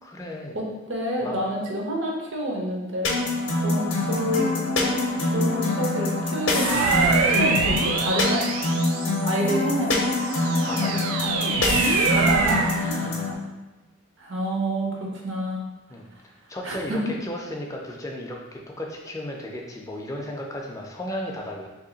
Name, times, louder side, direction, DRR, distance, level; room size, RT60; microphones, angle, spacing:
voice 1, 0.0-0.6 1.2-1.4 10.6-11.2 13.0-13.3 15.9-21.7, left 1 dB, 15° left, 0 dB, 0.3 m, -35 dB
voice 2, 0.5-3.1 3.6-8.5 9.2-10.1 12.0-13.4 14.2-15.7 16.6-17.1, equal, 65° right, -1 dB, 0.7 m, -29 dB
sound 1, 3.0-13.3, left 2 dB, 60° left, 0.6 m, -25 dB
sound 2, 6.5-9.4 10.0-12.8, right 4 dB, 90° right, 0.3 m, -24 dB
2.9 x 2.8 x 3.8 m, 1.1 s
head